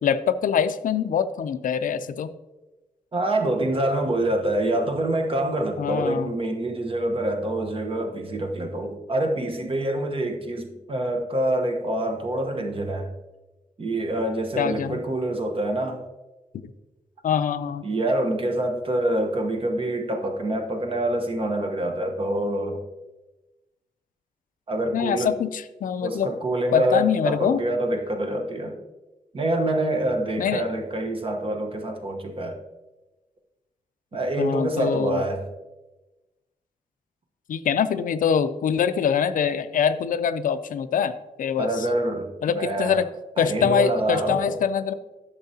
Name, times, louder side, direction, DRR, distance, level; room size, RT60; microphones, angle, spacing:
voice 1, 0.0-2.3 5.8-6.3 14.6-15.0 17.2-17.8 24.9-26.3 26.7-27.6 30.4-30.6 34.4-35.2 37.5-41.1 41.4-41.9 42.4-43.1 43.4-44.9, left 7 dB, 75° left, 12 dB, 0.4 m, -24 dB
voice 2, 3.1-13.1 13.8-16.0 17.8-22.8 24.7-25.3 26.0-28.7 29.3-32.6 34.1-35.5 41.6-43.0 43.4-44.6, right 1 dB, 40° right, 4 dB, 1.0 m, -26 dB
10.5 x 6.8 x 2.8 m, 1.1 s
wide cardioid pair, 115°, 14 cm